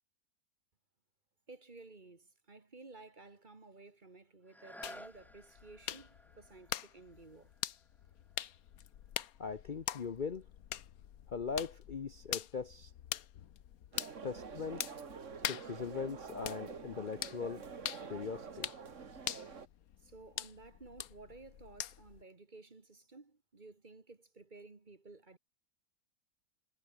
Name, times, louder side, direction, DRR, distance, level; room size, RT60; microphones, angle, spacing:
voice 1, 1.5-7.5 20.0-25.4, right 3 dB, 35° right, 1.8 m, -55 dB
sound 1, 4.4-10.1 10.7-10.8, equal, ahead, 0.9 m, -56 dB
sound 2, 4.8-22.2, left 10 dB, 80° left, 1.4 m, -44 dB
voice 2, 9.4-10.5 11.3-12.9 14.2-14.8 15.5-17.7 18.1-18.7, left 5 dB, 40° left, 0.8 m, -40 dB
sound 3, 13.9-19.7, right 6 dB, 60° right, 2.0 m, -47 dB
omnidirectional pair, 1.5 m